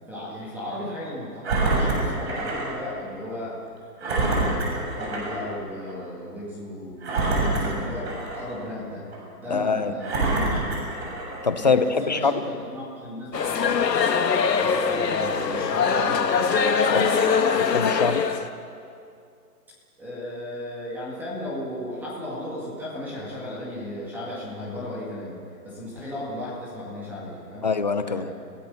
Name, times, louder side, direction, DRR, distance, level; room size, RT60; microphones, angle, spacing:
voice 1, 0.1-3.6 4.0-9.1 9.4-11.1 11.6-13.7 14.6-17.2 20.0-27.7 28.1-28.3, left 1 dB, 5° right, -7 dB, 2.0 m, -35 dB
Engine, 1.4-2.7 3.1-3.2 4.0-5.4 5.8-5.9 7.0-8.5 9.1-9.2 10.0-11.5 12.1-12.2, right 2 dB, 40° right, 7.4 m, -26 dB
voice 2, 9.5-9.9 11.4-12.5 16.9-17.1 17.6-18.2 27.6-28.3, left 4 dB, 30° left, 11 dB, 0.7 m, -24 dB
sound 1, 13.3-18.5, left 6 dB, 85° left, 1.9 m, -22 dB
30.0 x 17.0 x 6.9 m, 2.5 s
hypercardioid pair, 175°, 48 cm